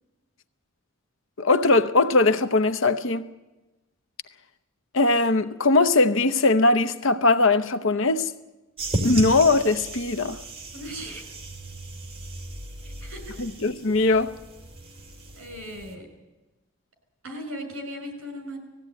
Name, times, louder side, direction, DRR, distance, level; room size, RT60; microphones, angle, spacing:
voice 1, 1.4-3.2 4.9-8.3 9.0-10.4 13.4-14.3, left 3 dB, 60° left, 0.8 m, -20 dB
sound 1, 8.8-15.9, right 1 dB, 25° right, 2.3 m, -35 dB
voice 2, 10.7-11.2 12.8-13.4 15.4-16.1 17.2-18.6, equal, 65° right, 5.6 m, -37 dB
19.0 x 16.0 x 9.0 m
head